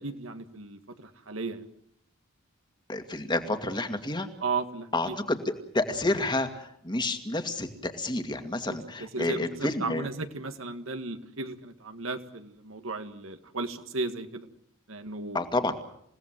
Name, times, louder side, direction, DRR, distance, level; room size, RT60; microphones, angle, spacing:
voice 1, 0.0-1.6 4.4-5.2 9.1-14.5 14.9-15.4, right 3 dB, 70° right, 8 dB, 1.9 m, -35 dB
voice 2, 2.9-4.3 4.9-10.1 15.3-15.7, left 2 dB, 20° left, 7 dB, 2.3 m, -29 dB
28.5 x 17.5 x 7.6 m, 0.71 s
head